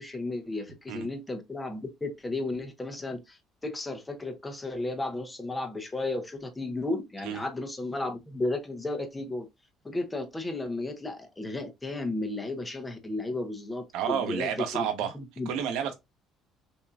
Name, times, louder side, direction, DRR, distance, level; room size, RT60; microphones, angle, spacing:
voice 1, 0.0-9.5 9.8-14.9 15.1-15.5, left 2 dB, 10° left, 0.7 m, -34 dB
voice 2, 13.9-15.1 15.5-15.9, right 8 dB, 85° right, 1.0 m, -30 dB
5.5 x 2.6 x 2.3 m
cardioid pair, 180°, 0 cm